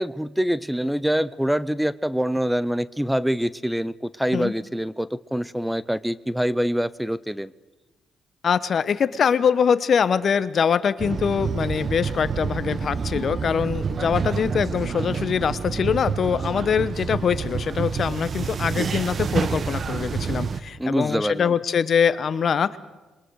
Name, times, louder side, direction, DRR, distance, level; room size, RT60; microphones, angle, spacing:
voice 1, 0.0-7.5 20.8-21.6, equal, 5° right, 18 dB, 0.6 m, -25 dB
voice 2, 8.4-22.8, left 7 dB, 55° left, 16 dB, 1.0 m, -23 dB
sound 1, 11.0-20.6, right 6 dB, 50° right, 0.9 m, -28 dB
27.0 x 22.5 x 4.8 m, 1.2 s
supercardioid pair, 55°, 0 cm